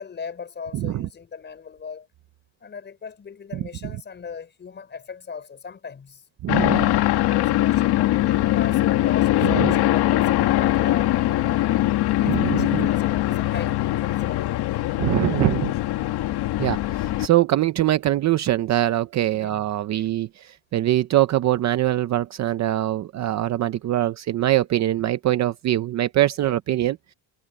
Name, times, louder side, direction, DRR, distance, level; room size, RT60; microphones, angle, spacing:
voice 1, 0.0-2.1 2.6-6.6 7.3-11.7 12.2-14.9 15.3-15.4 19.3-19.7 19.9-20.2 25.0-25.1, left 6 dB, 25° left, 5.1 m, -38 dB
voice 2, 0.7-1.1 3.5-4.0 6.4-6.8 9.4-9.7 12.2-12.9 15.0-15.7 16.6-27.1, right 13 dB, 40° right, 0.6 m, -23 dB
sound 1, 6.5-17.3, left 15 dB, 60° left, 1.8 m, -21 dB
cardioid pair, 175°, 43 cm